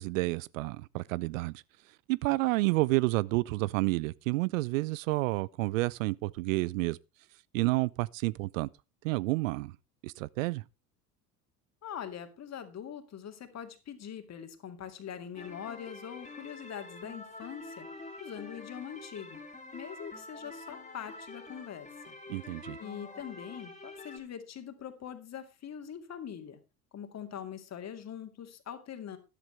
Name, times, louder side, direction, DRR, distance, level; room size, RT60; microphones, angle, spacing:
voice 1, 0.0-1.6 2.1-7.0 7.5-8.7 9.0-9.7 10.0-10.6 22.3-22.8, right 21 dB, 60° right, 0.5 m, -30 dB
voice 2, 11.8-17.9 18.2-19.4 19.7-22.2 22.5-26.6 26.9-29.2, left 8 dB, 35° left, 2.3 m, -43 dB
sound 1, 15.4-24.2, left 2 dB, 15° left, 2.7 m, -47 dB
13.0 x 11.5 x 3.3 m
figure-of-eight pair, 70°, 46 cm